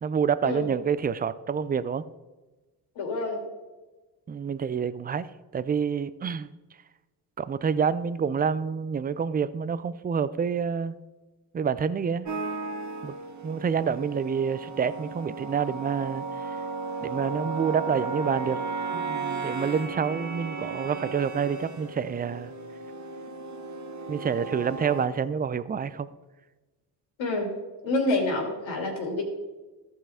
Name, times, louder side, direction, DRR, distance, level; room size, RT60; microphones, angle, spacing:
voice 1, 0.0-2.0 4.3-5.3 5.5-6.5 7.4-10.9 11.5-12.3 13.0-13.1 13.4-16.6 17.0-18.6 18.9-22.5 24.1-26.1, right 6 dB, 20° right, 15 dB, 0.4 m, -28 dB
voice 2, 2.9-3.4 27.2-27.5 27.8-29.2, left 2 dB, 65° left, 1 dB, 2.9 m, -27 dB
sound 1, 12.3-25.1, right 4 dB, 35° right, 1.2 m, -35 dB
14.0 x 5.6 x 3.6 m, 1.2 s
hypercardioid pair, 55°, 49 cm